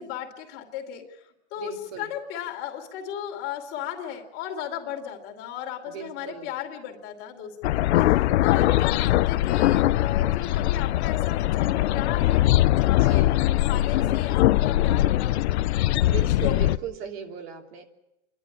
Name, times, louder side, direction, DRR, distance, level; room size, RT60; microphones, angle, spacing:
voice 1, 0.0-7.8 8.1-13.3 13.6-15.5 16.1-16.7, left 10 dB, 40° left, 3 dB, 2.8 m, -36 dB
voice 2, 1.6-2.1 5.9-6.5 7.9-8.4 12.9-13.3 16.0-17.8, right 8 dB, 60° right, 2 dB, 3.1 m, -38 dB
sound 1, 7.6-16.8, left 15 dB, 70° left, 0.7 m, -21 dB
27.0 x 11.5 x 9.9 m, 0.93 s
supercardioid pair, 150°, 34 cm